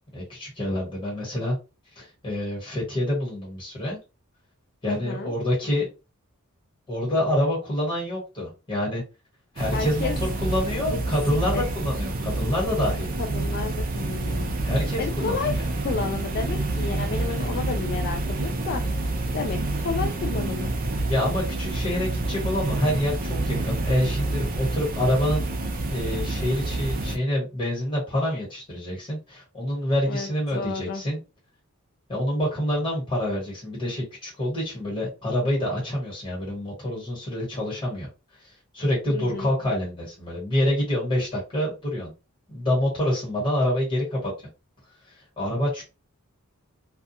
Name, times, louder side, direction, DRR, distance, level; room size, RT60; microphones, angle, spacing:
voice 1, 0.1-1.5 1.9-4.0 4.8-5.9 6.9-9.0 9.5-13.1 14.6-15.7 21.0-25.5 25.9-31.2 32.1-38.1 38.7-42.1 42.5-44.3 45.1-45.8, left 1 dB, 25° left, -4 dB, 1.3 m, -27 dB
voice 2, 4.9-5.3 9.7-10.3 10.9-11.0 11.3-11.6 13.2-14.5 15.0-15.5 15.8-18.8 19.3-20.7 30.1-31.0 39.1-39.5, left 5 dB, 45° left, 3 dB, 0.3 m, -31 dB
sound 1, 9.6-27.2, right 2 dB, 40° right, 0.5 m, -28 dB
2.3 x 2.3 x 2.8 m, 0.29 s
head